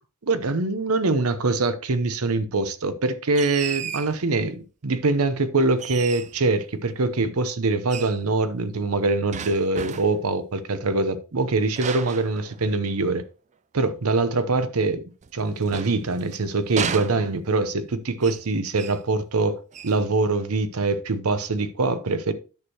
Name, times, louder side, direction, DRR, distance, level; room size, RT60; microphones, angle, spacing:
voice 1, 0.2-13.2 13.7-15.0 15.3-22.3, right 3 dB, 75° right, 0.8 m, -24 dB
sound 1, 3.3-4.2 5.8-6.5 7.9-8.2 9.3-10.3 11.8-13.0 15.2-16.4 16.8-17.7 18.2-18.5 18.8-19.1 19.7-20.0, right 7 dB, 30° right, 0.4 m, -34 dB
10.5 x 6.4 x 2.9 m
head